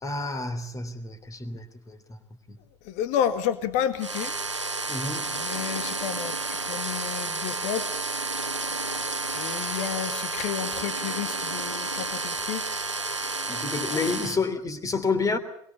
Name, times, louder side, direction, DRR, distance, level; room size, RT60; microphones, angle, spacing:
voice 1, 0.0-1.6 4.9-5.2 13.5-15.4, left 4 dB, 20° left, 11 dB, 3.2 m, -29 dB
voice 2, 2.8-4.3 5.3-7.9 9.3-12.6 13.9-14.0, left 9 dB, 55° left, 11 dB, 2.0 m, -31 dB
sound 1, 4.0-14.4, right 3 dB, 90° right, 1.2 m, -31 dB
23.5 x 23.5 x 7.1 m, 0.72 s
figure-of-eight pair, 70°, 15 cm